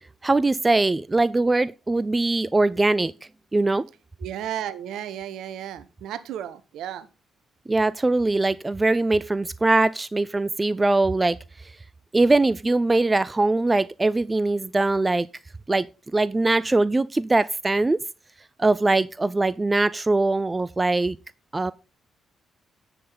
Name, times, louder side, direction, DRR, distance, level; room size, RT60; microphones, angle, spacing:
voice 1, 0.2-3.1 3.5-3.8 7.7-11.4 12.1-15.3 15.7-15.9 16.1-18.0 18.6-21.2 21.5-21.7, right 2 dB, 25° right, 0.5 m, -21 dB
voice 2, 4.2-7.1, right 10 dB, 65° right, 0.9 m, -33 dB
9.9 x 7.7 x 4.0 m
figure-of-eight pair, 40°, 0 cm